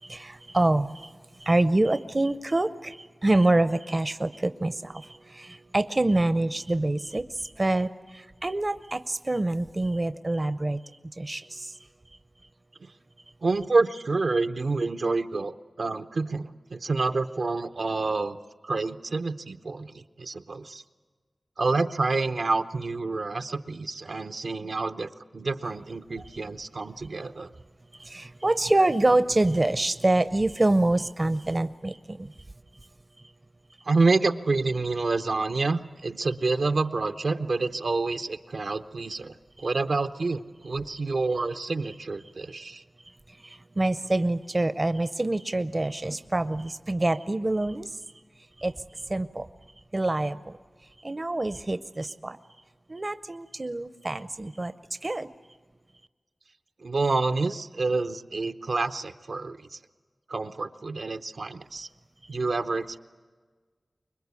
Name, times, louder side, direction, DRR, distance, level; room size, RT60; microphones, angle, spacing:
voice 1, 0.0-10.8 11.2-11.9 28.0-32.3 39.6-39.7 43.4-48.0 48.6-49.5 49.9-50.6 51.0-52.4 52.9-54.7 55.0-55.3, right 2 dB, 40° right, 12 dB, 0.6 m, -26 dB
voice 2, 13.4-18.4 18.6-20.8 21.6-27.5 33.8-42.8 56.8-59.8 60.3-61.9 62.3-63.0, right 3 dB, 75° right, 8 dB, 0.8 m, -28 dB
25.0 x 21.5 x 8.3 m, 1.4 s
wide cardioid pair, 50°, 0 cm